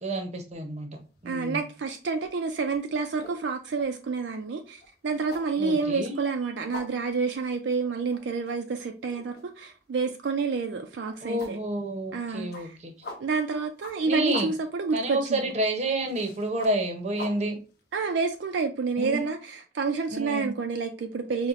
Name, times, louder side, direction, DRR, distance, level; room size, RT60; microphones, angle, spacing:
voice 1, 0.0-1.6 5.6-6.2 11.2-12.9 14.1-14.5 14.9-17.6 19.0-19.3 20.1-20.5, right 1 dB, 35° right, 0.7 m, -29 dB
sound 1, 1.0-1.4 1.7-18.6, left 2 dB, 60° left, 0.8 m, -45 dB
voice 2, 1.3-11.6 12.1-12.8 13.2-15.5 17.9-21.5, right 4 dB, 70° right, 0.4 m, -29 dB
5.5 x 2.1 x 2.4 m
head